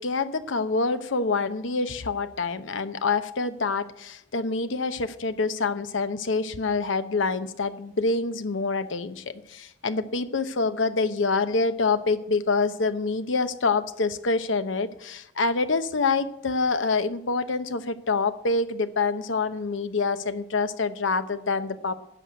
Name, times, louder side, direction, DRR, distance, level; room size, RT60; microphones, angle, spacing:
voice 1, 0.0-21.9, left 3 dB, 85° left, 11 dB, 0.8 m, -26 dB
11.0 x 6.3 x 9.1 m, 0.81 s
head